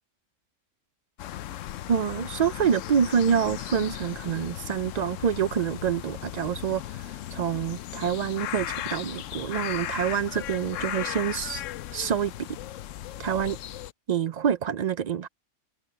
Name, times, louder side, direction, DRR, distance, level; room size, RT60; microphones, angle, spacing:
sound 1, 1.2-13.9, left 12 dB, 75° left, 1.0 m, -36 dB
voice 1, 1.9-11.6 11.9-12.3 13.2-13.6 14.1-15.3, right 8 dB, 70° right, 0.4 m, -27 dB
omnidirectional pair, 1.3 m